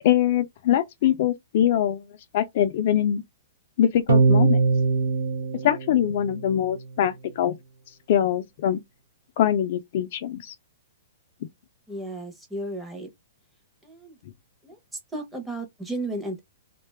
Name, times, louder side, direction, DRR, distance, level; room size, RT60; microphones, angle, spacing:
voice 1, 0.0-2.1 2.3-3.2 3.8-4.6 5.6-7.5 8.1-8.8 9.4-10.5, left 10 dB, 50° left, 0.4 m, -23 dB
sound 1, 4.1-6.7, right 4 dB, 85° right, 0.5 m, -22 dB
voice 2, 11.9-13.1 13.8-14.2 14.6-14.8 15.1-16.4, right 1 dB, 5° right, 0.7 m, -34 dB
2.5 x 2.2 x 3.2 m
hypercardioid pair, 160°, 0 cm